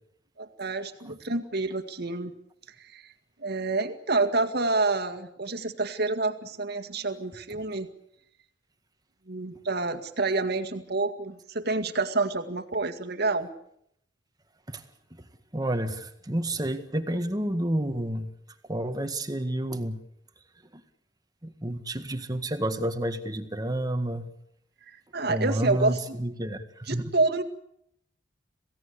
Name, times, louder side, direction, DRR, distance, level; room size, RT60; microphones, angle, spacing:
voice 1, 0.4-2.3 2.8-3.1 3.4-7.9 9.3-13.5 24.9-26.0 26.9-27.4, right 3 dB, 60° right, 6 dB, 2.1 m, -28 dB
voice 2, 15.5-18.3 18.7-20.0 20.7-20.8 21.4-24.3 25.3-27.1, right 1 dB, 20° right, 8 dB, 1.8 m, -30 dB
27.5 x 17.0 x 8.4 m, 0.74 s
head